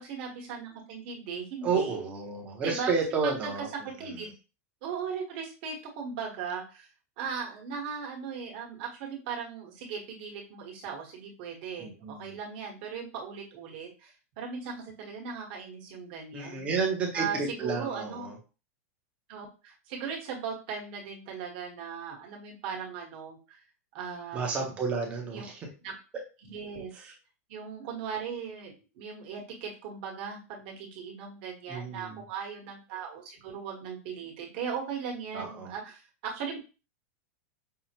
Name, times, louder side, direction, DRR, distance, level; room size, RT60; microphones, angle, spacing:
voice 1, 0.0-2.0 2.6-2.9 3.2-3.5 4.0-4.3 4.8-6.9 7.2-11.9 12.2-16.7 17.1-18.3 19.3-23.6 23.9-24.7 25.3-25.4 25.8-25.9 26.4-27.1 27.5-36.6, right 6 dB, 40° right, -1 dB, 1.2 m, -38 dB
voice 2, 1.6-4.2 11.8-12.3 16.3-18.3 24.3-25.6 26.9-27.1 31.7-32.2 35.3-35.7, right 4 dB, 15° right, 1 dB, 0.7 m, -31 dB
5.5 x 2.1 x 2.9 m, 0.33 s
supercardioid pair, 175°, 8 cm